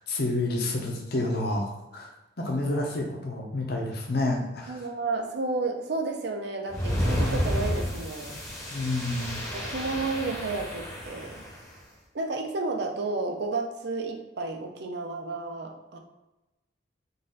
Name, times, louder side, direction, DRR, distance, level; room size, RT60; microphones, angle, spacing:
voice 1, 0.0-2.1 2.4-4.8 8.7-9.4, left 2 dB, 55° left, 0 dB, 0.8 m, -29 dB
voice 2, 4.7-8.4 9.5-11.4 12.1-16.0, right 3 dB, 55° right, 3 dB, 0.5 m, -32 dB
sound 1, 6.7-11.6, equal, 15° left, 0.8 m, -31 dB
4.0 x 2.5 x 3.8 m, 1.1 s
head